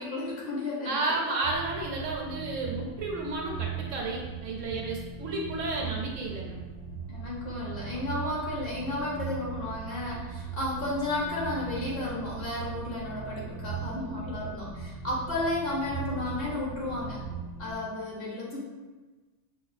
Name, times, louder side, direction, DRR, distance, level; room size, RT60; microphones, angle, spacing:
voice 1, 0.0-1.2 7.1-17.2 17.6-18.6, left 2 dB, 50° left, -5 dB, 0.8 m, -33 dB
voice 2, 0.9-6.6, right 2 dB, 70° right, -2 dB, 1.0 m, -32 dB
sound 1, 1.4-17.7, right 6 dB, 15° left, 0.5 m, -39 dB
5.3 x 2.3 x 2.4 m, 1.3 s
omnidirectional pair, 1.5 m